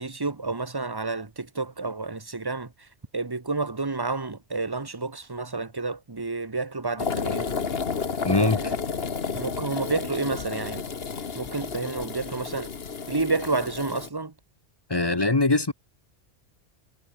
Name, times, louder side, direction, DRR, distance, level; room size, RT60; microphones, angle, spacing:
voice 1, 0.0-2.9 3.1-7.5 8.3-8.8 9.3-10.8 11.3-12.7 13.1-14.3, right 3 dB, 20° right, 1.2 m, -30 dB
sound 1, 7.0-14.1, left 5 dB, 55° left, 1.6 m, -31 dB
voice 2, 8.2-8.7 14.9-15.7, left 3 dB, 25° left, 0.8 m, -22 dB
omnidirectional pair, 1.2 m